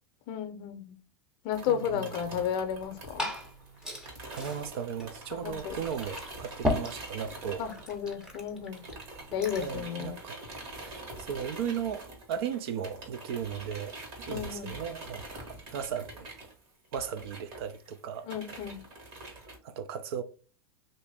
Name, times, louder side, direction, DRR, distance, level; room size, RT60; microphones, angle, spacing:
voice 1, 0.3-1.0 1.4-3.3 5.4-5.8 7.6-8.8 9.3-10.2 14.3-14.7 18.2-18.8, left 8 dB, 45° left, 0.6 m, -33 dB
sound 1, 1.5-8.4 8.7-19.6, right 2 dB, 45° right, 1.4 m, -45 dB
voice 2, 1.7-2.4 4.3-7.6 9.6-10.4 10.8-14.0 14.3-16.3 16.9-18.3 19.6-20.2, right 8 dB, 75° right, 0.5 m, -36 dB
Liquid, 2.7-9.8, left 1 dB, 5° right, 0.6 m, -38 dB
2.9 x 2.6 x 3.4 m
supercardioid pair, 140°, 13 cm